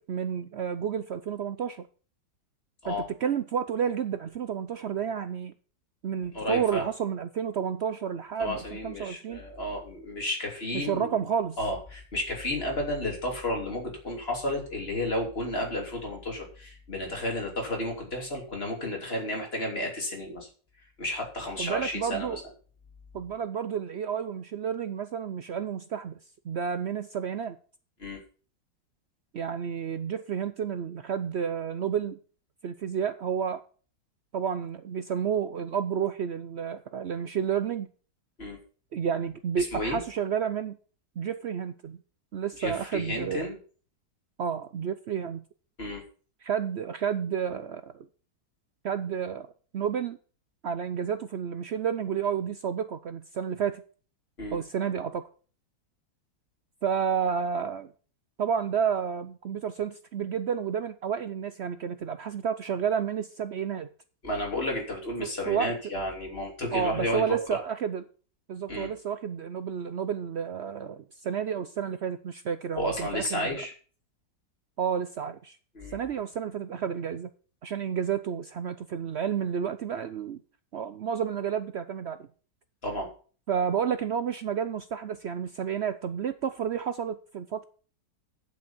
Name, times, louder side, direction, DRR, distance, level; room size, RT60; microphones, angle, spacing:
voice 1, 0.1-1.9 2.9-5.5 6.0-9.4 10.7-11.6 21.6-22.4 23.1-26.2 26.4-27.6 29.3-32.2 32.6-33.6 34.3-37.9 38.9-40.8 41.2-42.0 42.3-43.5 44.4-45.4 46.4-48.1 48.8-49.5 49.7-50.2 50.6-53.8 54.5-55.2 56.8-57.9 58.4-63.9 65.2-65.7 66.7-68.0 68.5-73.6 74.8-75.6 75.9-77.3 77.6-80.4 80.7-82.3 83.5-87.6, right 7 dB, 90° right, 0.5 m, -30 dB
voice 2, 6.3-6.8 8.4-11.1 11.6-20.5 21.0-22.4 28.0-28.2 38.4-38.6 39.6-40.0 42.6-43.6 45.8-46.0 54.4-54.6 64.2-67.4 68.7-68.9 72.7-73.7 75.8-76.0 82.8-83.1, left 1 dB, 35° left, 3.4 m, -32 dB
8.7 x 8.0 x 7.1 m
omnidirectional pair, 1.9 m